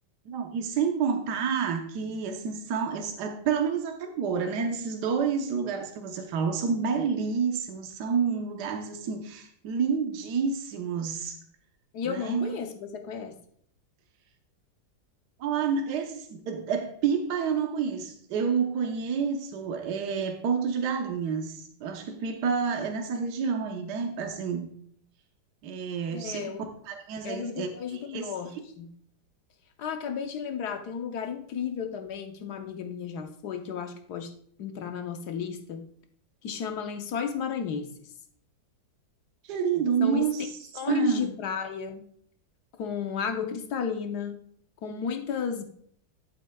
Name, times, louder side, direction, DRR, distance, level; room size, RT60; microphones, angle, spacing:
voice 1, 0.2-11.4 12.0-12.6 15.4-24.7 25.6-26.5 26.8-28.3 39.4-40.5 40.9-41.3, right 6 dB, 65° right, 4 dB, 1.5 m, -29 dB
voice 2, 11.9-13.4 26.1-26.6 27.2-28.9 29.8-34.3 34.6-35.9 36.4-38.1 40.0-40.3 40.7-42.1 42.8-44.4 44.8-45.6, left 6 dB, 65° left, 5 dB, 1.3 m, -33 dB
11.0 x 8.9 x 2.3 m, 0.64 s
omnidirectional pair, 2.0 m